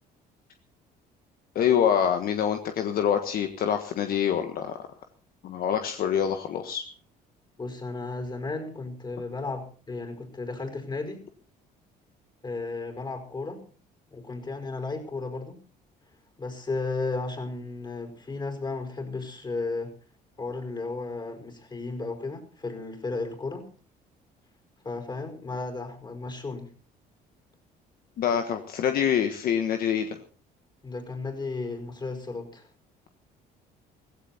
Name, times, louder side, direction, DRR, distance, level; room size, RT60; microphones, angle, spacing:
voice 1, 1.5-4.9 5.4-6.8 28.2-30.1, left 8 dB, 60° left, 6 dB, 1.5 m, -25 dB
voice 2, 7.6-11.2 12.4-13.6 14.1-15.6 16.4-19.9 20.4-23.7 24.8-26.7 30.8-32.7, left 3 dB, 25° left, 6 dB, 5.5 m, -34 dB
17.0 x 16.0 x 4.3 m, 0.41 s
cardioid pair, 110°, 17 cm